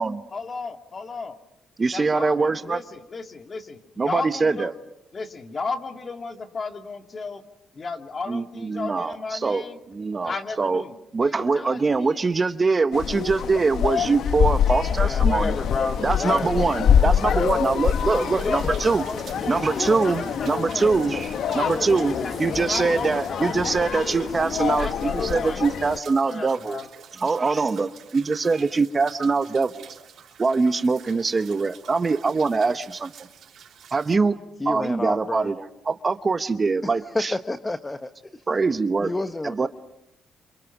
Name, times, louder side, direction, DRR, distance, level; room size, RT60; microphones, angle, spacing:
voice 1, 0.3-1.4 1.9-4.7 5.1-7.4 7.7-9.8 10.2-12.2 14.9-16.7 17.2-17.6 18.1-20.9 21.5-24.3 24.8-25.6 26.2-26.9, left 4 dB, 35° left, 6 dB, 2.5 m, -33 dB
voice 2, 1.8-2.8 4.0-4.7 8.3-9.6 9.9-10.8 11.1-15.5 16.0-19.0 19.5-22.1 22.4-26.8 27.2-29.9 30.4-33.1 33.9-34.4 34.7-37.3 38.5-39.1 39.4-39.7, right 4 dB, 30° right, 10 dB, 1.2 m, -23 dB
sound 1, 12.9-26.0, left 8 dB, 70° left, 1.1 m, -25 dB
sound 2, 17.1-23.3, right 1 dB, ahead, 3.6 m, -44 dB
sound 3, 17.8-34.2, right 8 dB, 65° right, 4.9 m, -48 dB
voice 3, 34.6-35.5 36.8-38.4 39.0-39.7, left 2 dB, 20° left, 9 dB, 1.3 m, -30 dB
29.0 x 27.0 x 6.2 m, 0.88 s
cardioid pair, 90°, 0 cm